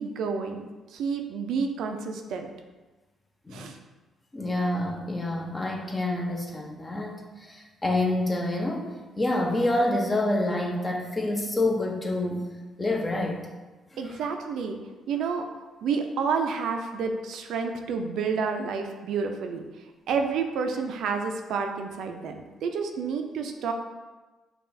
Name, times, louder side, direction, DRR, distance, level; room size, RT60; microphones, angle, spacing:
voice 1, 0.0-2.5 3.5-3.8 14.0-14.8 15.1-19.6 20.1-23.7, right 5 dB, 75° right, 4 dB, 0.4 m, -30 dB
voice 2, 4.3-7.1 7.4-12.5 12.8-13.4, left 1 dB, 20° left, 1 dB, 0.6 m, -27 dB
5.5 x 2.3 x 2.6 m, 1.2 s
cardioid pair, 90°, 0 cm